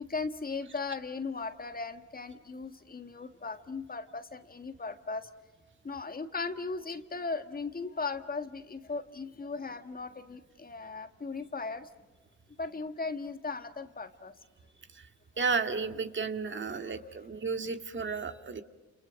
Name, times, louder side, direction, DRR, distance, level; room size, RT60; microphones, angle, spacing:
voice 1, 0.0-5.3 5.8-11.9 12.6-14.4 16.8-16.9, left 4 dB, 30° left, 9 dB, 1.8 m, -37 dB
voice 2, 15.4-18.6, right 5 dB, 40° right, 7 dB, 2.1 m, -33 dB
29.5 x 29.0 x 6.4 m, 1.1 s
cardioid pair, 90°, 30 cm